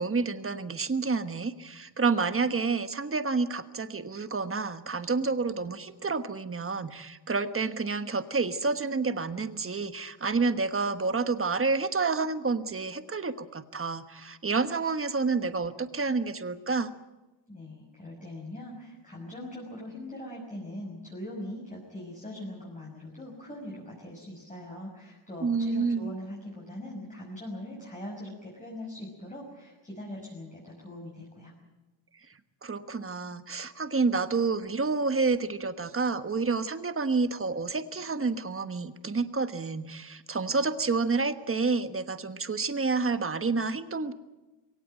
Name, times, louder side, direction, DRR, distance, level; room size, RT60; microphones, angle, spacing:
voice 1, 0.0-16.9 25.4-26.1 32.6-44.1, right 4 dB, 25° right, 10 dB, 1.3 m, -29 dB
voice 2, 17.5-31.5, left 1 dB, 15° left, -3 dB, 6.0 m, -41 dB
22.5 x 17.5 x 9.0 m, 1.1 s
wide cardioid pair, 140°, 49 cm